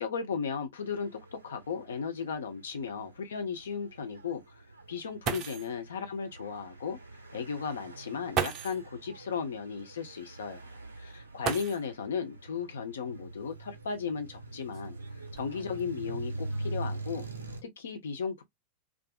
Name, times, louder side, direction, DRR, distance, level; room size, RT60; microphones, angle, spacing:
voice 1, 0.0-4.4 4.9-7.0 7.3-15.0 15.3-17.2 17.6-18.4, left 6 dB, 65° left, 0.6 m, -35 dB
sound 1, 0.8-17.6, right 2 dB, 80° right, 0.6 m, -44 dB
sound 2, 1.3-1.4 1.8-1.9 2.6-2.7 4.9-5.0 5.2-5.8 7.1-7.2 8.3-8.9 11.4-12.1 13.5-13.6 14.3-15.8 16.5-16.9 17.2-17.6, right 7 dB, 35° right, 0.5 m, -36 dB
2.4 x 2.4 x 2.3 m
figure-of-eight pair, 90°, 0 cm